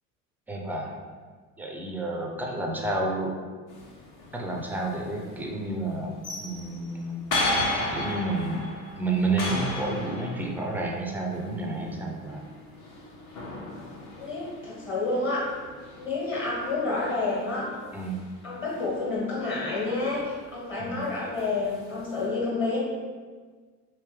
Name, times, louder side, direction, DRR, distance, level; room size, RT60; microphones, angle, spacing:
voice 1, 0.5-0.9 1.6-3.4 4.3-7.3 7.9-8.7 9.0-12.4 17.9-18.2 20.8-21.0, right 2 dB, 5° right, 0 dB, 0.3 m, -30 dB
sound 1, 3.7-22.3, left 1 dB, 45° left, 0.9 m, -36 dB
voice 2, 14.2-15.5 16.0-17.7 18.4-22.8, left 3 dB, 25° left, -5 dB, 1.3 m, -29 dB
3.1 x 3.0 x 3.2 m, 1.5 s
figure-of-eight pair, 60°, 45 cm